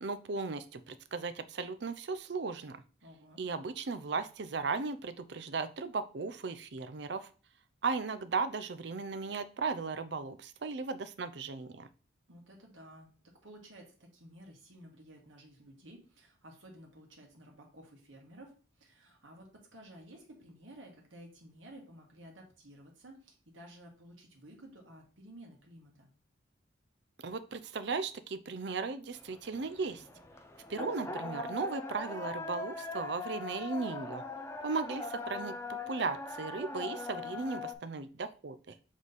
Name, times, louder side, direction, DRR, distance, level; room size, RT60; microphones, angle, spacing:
voice 1, 0.0-2.8 3.4-7.3 7.8-11.9 27.2-30.0 30.7-34.2 34.6-38.8, right 4 dB, 60° right, 11 dB, 0.5 m, -36 dB
voice 2, 3.0-3.4 12.3-13.1 13.4-26.1, right 1 dB, 85° right, 1 dB, 1.7 m, -54 dB
sound 1, 29.2-37.7, left 3 dB, 15° left, 0.5 m, -41 dB
7.2 x 3.2 x 4.1 m, 0.38 s
head